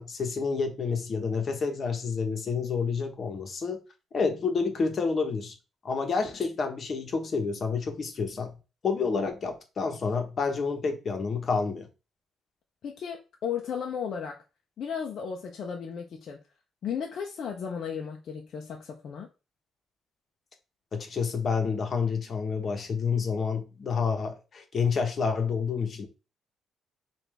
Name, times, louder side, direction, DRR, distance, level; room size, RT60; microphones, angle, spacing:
voice 1, 0.0-3.8 4.1-5.5 5.8-8.5 8.8-11.9 20.9-26.1, left 5 dB, 45° left, 1.2 m, -29 dB
voice 2, 12.8-14.4 14.8-16.4 16.8-19.3, left 7 dB, 65° left, 0.7 m, -35 dB
5.7 x 2.6 x 3.4 m
cardioid pair, 90°, 0 cm